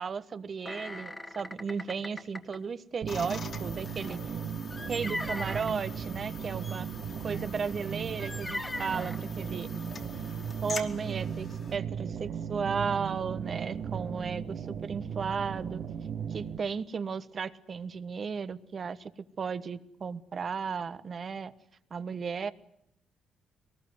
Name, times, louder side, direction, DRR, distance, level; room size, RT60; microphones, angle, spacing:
voice 1, 0.0-4.2 4.9-6.9 7.2-9.7 10.1-15.8 16.3-19.1 19.4-21.5 21.9-22.5, right 6 dB, 45° right, 13 dB, 1.3 m, -35 dB
sound 1, 0.7-2.6 3.9-5.7 6.6-6.8 7.3-7.5 8.2-9.2 10.0-10.1 10.4-10.6, left 1 dB, 15° left, 1.8 m, -39 dB
sound 2, 3.0-16.6, right 7 dB, 65° right, 1.6 m, -37 dB
sound 3, 3.1-11.8, left 4 dB, 50° left, 3.0 m, -45 dB
23.0 x 20.0 x 9.6 m, 0.77 s
cardioid pair, 90°, 0 cm